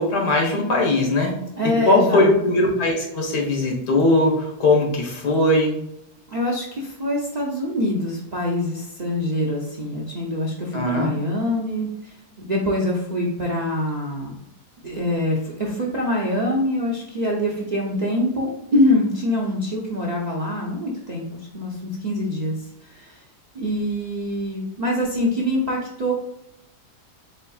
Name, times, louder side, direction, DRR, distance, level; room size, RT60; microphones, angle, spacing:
voice 1, 0.0-1.4 1.9-5.8 10.7-11.1, left 2 dB, 85° left, 0 dB, 1.7 m, -19 dB
voice 2, 1.6-2.3 6.3-14.3 14.8-21.2 21.5-22.6 22.8-23.2 23.5-26.1, left 1 dB, 50° right, -4 dB, 0.5 m, -24 dB
4.3 x 3.9 x 2.3 m, 0.82 s
omnidirectional pair, 1.7 m